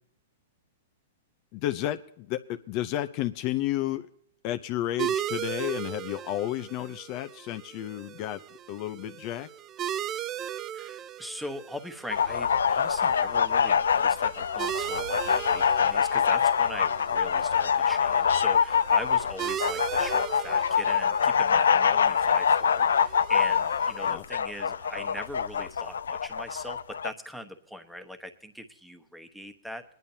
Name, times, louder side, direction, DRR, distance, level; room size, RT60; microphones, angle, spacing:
voice 1, 1.5-4.1 4.4-8.4 8.7-9.5 24.1-24.2, left 13 dB, 45° left, 10 dB, 0.6 m, -32 dB
sound 1, 5.0-24.1, right 10 dB, 25° right, 0.4 m, -38 dB
voice 2, 10.7-29.8, equal, ahead, 8 dB, 1.1 m, -41 dB
sound 2, 12.1-27.1, left 7 dB, 90° left, 0.4 m, -25 dB
22.0 x 10.5 x 2.8 m, 0.66 s
hypercardioid pair, 130°, 0 cm